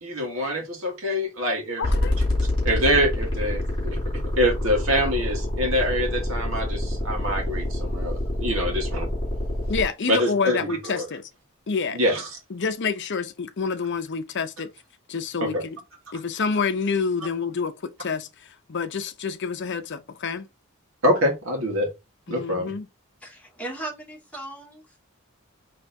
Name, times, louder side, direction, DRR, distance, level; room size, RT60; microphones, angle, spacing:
voice 1, 0.0-1.8 2.6-4.0 4.4-9.1 10.1-11.1 11.9-12.3 15.4-15.6 21.0-21.9 22.3-22.7, equal, 65° right, 1.7 m, -25 dB
voice 2, 1.8-2.1 9.7-11.2 11.7-12.0 12.5-14.7 15.1-15.8 16.1-20.5 22.3-22.9, left 5 dB, 55° left, 0.6 m, -28 dB
sound 1, 1.8-9.8, left 1 dB, 25° left, 2.4 m, -26 dB
voice 3, 23.2-24.8, right 2 dB, 5° left, 1.8 m, -37 dB
4.3 x 3.3 x 3.4 m
head